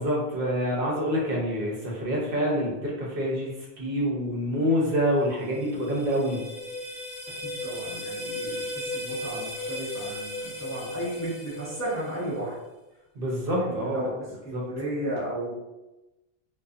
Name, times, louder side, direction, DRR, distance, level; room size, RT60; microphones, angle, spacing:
voice 1, 0.0-3.5 3.8-6.4 13.2-14.0 14.5-14.6, equal, 65° right, -3 dB, 0.8 m, -26 dB
sound 1, 5.3-12.4, left 1 dB, 60° left, 0.9 m, -36 dB
voice 2, 7.4-12.6 13.6-15.5, right 1 dB, 20° left, -8 dB, 0.5 m, -34 dB
2.6 x 2.2 x 2.3 m, 1.0 s
omnidirectional pair, 1.1 m